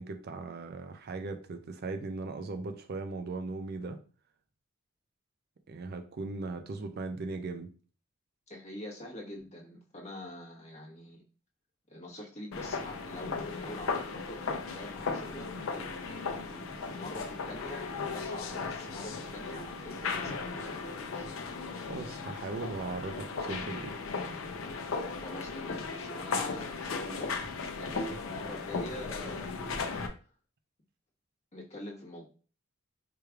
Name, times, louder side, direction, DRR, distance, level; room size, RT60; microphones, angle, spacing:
voice 1, 0.0-4.0 5.7-7.7 21.9-24.0, right 3 dB, 50° right, 0.4 m, -38 dB
voice 2, 8.5-11.2 11.9-15.5 15.7-21.3 25.2-30.0 31.5-32.3, left 1 dB, 35° left, 1.2 m, -45 dB
sound 1, 12.5-30.1, left 4 dB, 70° left, 0.6 m, -36 dB
4.8 x 3.2 x 2.3 m
head